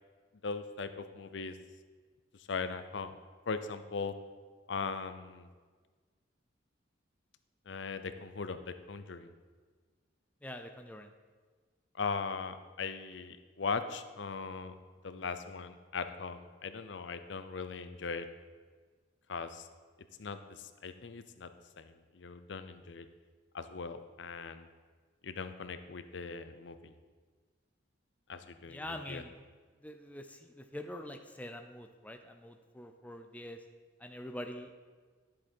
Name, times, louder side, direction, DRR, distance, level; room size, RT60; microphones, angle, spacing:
voice 1, 0.4-1.6 2.5-3.1 3.5-4.1 4.7-5.5 7.7-9.3 11.9-14.7 15.0-18.3 19.3-19.7 20.2-21.5 21.8-23.1 23.5-24.7 25.2-26.9 28.3-29.2, left 5 dB, 65° left, 11 dB, 0.6 m, -39 dB
voice 2, 10.4-11.1 28.7-29.3 29.8-33.6 34.0-34.7, left 1 dB, 10° left, 5 dB, 0.5 m, -44 dB
11.0 x 7.5 x 4.4 m, 1.5 s
head